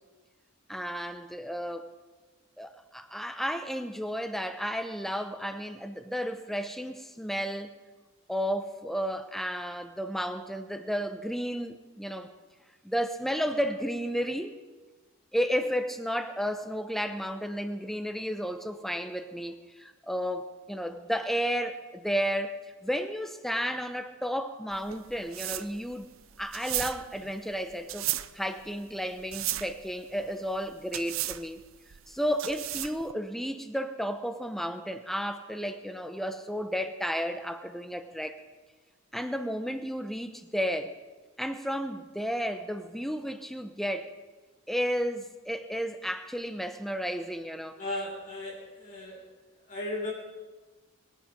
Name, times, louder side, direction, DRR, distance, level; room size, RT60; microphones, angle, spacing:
voice 1, 0.7-1.9 2.6-7.7 8.3-12.3 12.8-14.5 15.3-22.5 22.8-26.1 26.4-31.6 32.1-38.4 39.1-40.9 41.4-44.1 44.7-47.8, equal, ahead, 9 dB, 0.8 m, -32 dB
sound 1, 24.7-33.1, right 15 dB, 80° right, 0.5 m, -36 dB
voice 2, 47.8-49.2 49.7-50.1, left 1 dB, 40° left, -4 dB, 3.6 m, -36 dB
22.5 x 10.5 x 5.2 m, 1.3 s
head